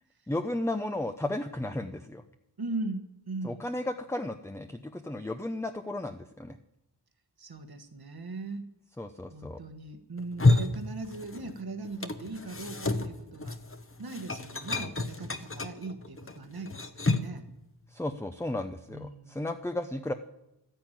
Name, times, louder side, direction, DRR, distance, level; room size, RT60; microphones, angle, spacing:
voice 1, 0.3-2.2 3.4-6.6 9.0-9.6 17.9-20.1, left 1 dB, 5° left, 7 dB, 0.6 m, -34 dB
voice 2, 2.6-3.6 7.4-8.7 9.3-13.6 14.0-17.5 18.9-19.4, right 3 dB, 60° right, 7 dB, 1.4 m, -39 dB
sound 1, 10.2-11.6 11.8-17.4, left 2 dB, 30° left, 1.1 m, -29 dB
12.0 x 10.5 x 9.0 m, 0.89 s
wide cardioid pair, 80°, 41 cm